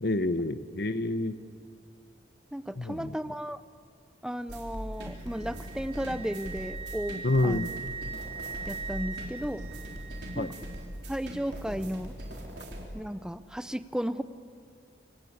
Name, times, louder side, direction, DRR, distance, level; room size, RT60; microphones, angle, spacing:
voice 1, 0.0-1.4 2.8-3.1 7.2-7.7 10.4-10.5, left 2 dB, 60° left, 12 dB, 0.9 m, -28 dB
voice 2, 2.5-3.6 4.2-7.7 8.7-9.7 10.3-10.5 11.1-12.2 12.9-14.2, equal, 5° right, 13 dB, 0.5 m, -34 dB
sound 1, 4.5-12.8, equal, 65° right, 4.1 m, -41 dB
Wind instrument woodwind instrument, 5.0-11.0, right 5 dB, 30° right, 1.7 m, -42 dB
28.5 x 16.0 x 8.7 m, 2.3 s
head